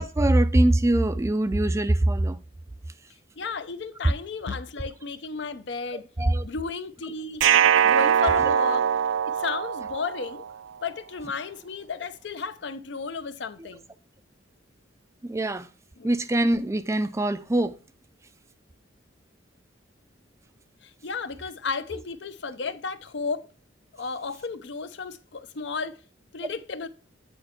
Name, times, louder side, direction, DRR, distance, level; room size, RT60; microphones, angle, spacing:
voice 1, 0.0-2.4 6.2-6.4 15.2-15.7 16.0-17.8, right 1 dB, 15° right, 0.3 m, -23 dB
voice 2, 3.4-6.0 6.4-7.4 7.8-8.9 9.3-10.4 10.8-13.8 16.0-16.1 20.8-23.5 23.9-26.0 26.3-26.9, left 4 dB, 65° left, 0.6 m, -33 dB
sound 1, 7.4-10.5, right 8 dB, 85° right, 0.4 m, -22 dB
8.9 x 4.4 x 4.4 m
head